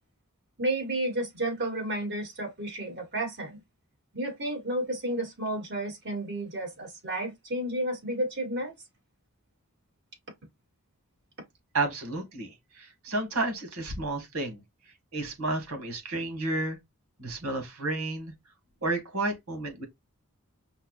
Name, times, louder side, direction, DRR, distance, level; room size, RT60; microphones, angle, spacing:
voice 1, 0.6-3.6 4.1-8.7, right 1 dB, 50° right, 2.2 m, -31 dB
voice 2, 11.7-14.6 15.1-16.8 17.2-18.3 18.8-19.8, right 2 dB, 80° right, 1.7 m, -31 dB
5.6 x 2.3 x 2.3 m
head